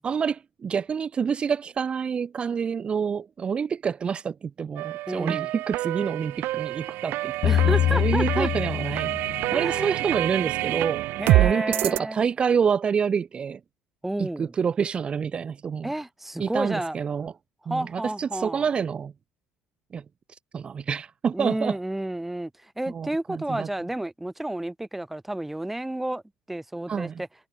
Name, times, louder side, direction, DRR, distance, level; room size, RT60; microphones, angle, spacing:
voice 1, 0.0-7.3 7.6-11.0 11.4-13.6 14.2-15.9 16.4-17.3 17.7-19.1 19.9-20.0 20.5-21.8 22.9-23.7 26.9-27.2, right 6 dB, 25° right, 2.3 m, -27 dB
sound 1, 4.8-12.0, right 17 dB, 60° right, 1.3 m, -27 dB
voice 2, 5.1-5.5 7.4-8.5 9.5-10.0 11.2-12.2 14.0-14.5 15.8-17.0 17.7-18.7 21.3-26.2 26.5-27.3, right 1 dB, 5° right, 3.7 m, -31 dB
sound 2, 7.4-9.8, left 11 dB, 45° left, 1.2 m, -24 dB
cardioid pair, 150°, 4 cm